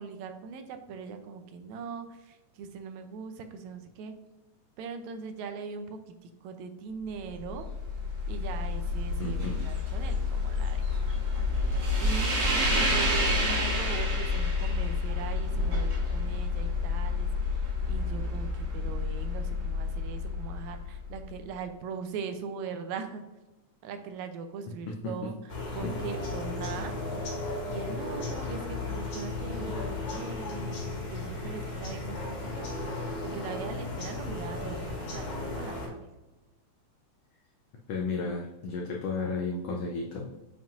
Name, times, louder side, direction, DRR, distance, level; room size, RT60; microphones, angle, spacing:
voice 1, 0.0-4.1 4.8-7.7 8.3-10.9 12.0-12.3 12.8-23.2 23.8-26.9 27.7-35.3 35.5-36.0, right 5 dB, 80° right, 7 dB, 1.9 m, -40 dB
sound 1, 7.2-21.3, left 2 dB, 50° right, 0.9 m, -29 dB
voice 2, 9.2-9.6 24.9-25.3 25.8-25.9 37.9-40.3, left 3 dB, 75° left, 0 dB, 1.4 m, -33 dB
sound 2, 25.5-35.9, left 2 dB, 55° left, 2.9 m, -35 dB
7.1 x 5.6 x 2.5 m, 1.1 s
omnidirectional pair, 3.4 m